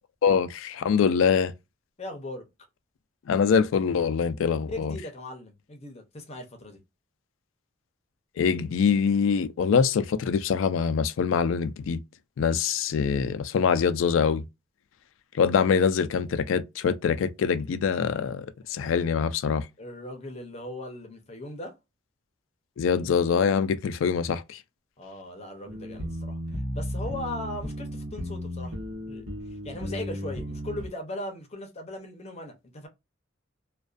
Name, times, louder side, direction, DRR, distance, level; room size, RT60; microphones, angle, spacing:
voice 1, 0.2-1.5 3.3-4.9 8.4-12.0 12.4-14.4 15.4-19.7 22.8-24.6, left 6 dB, 85° left, 0.3 m, -24 dB
voice 2, 2.0-2.5 4.7-6.8 19.8-21.8 25.0-28.7 29.1-32.9, left 1 dB, 35° left, 0.6 m, -38 dB
sound 1, 25.7-30.9, equal, 80° right, 1.0 m, -34 dB
2.4 x 2.2 x 2.3 m
head